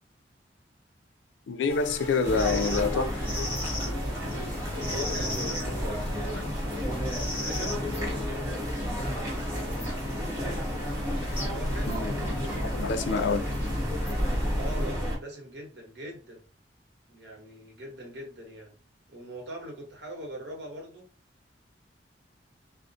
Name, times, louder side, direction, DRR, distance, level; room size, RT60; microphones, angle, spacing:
voice 1, 1.5-3.3 11.9-13.4, left 4 dB, 80° left, 0.3 m, -27 dB
sound 1, 1.7-14.9, left 1 dB, 15° left, 0.7 m, -39 dB
sound 2, 2.2-15.2, equal, 20° right, 0.8 m, -31 dB
voice 2, 4.8-6.7 7.2-8.4 9.0-10.8 11.3-12.0 12.6-13.5 14.5-16.4 17.1-18.8 19.1-21.1, right 1 dB, 70° right, 0.9 m, -43 dB
2.4 x 2.1 x 2.6 m
head